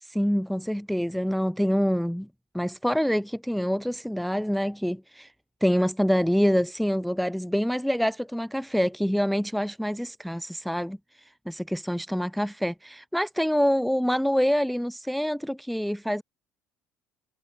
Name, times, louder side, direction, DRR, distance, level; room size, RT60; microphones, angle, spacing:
voice 1, 0.0-2.3 2.5-5.3 5.6-16.2, equal, ahead, 0.4 m, -26 dB
hypercardioid pair, 60°, 6 cm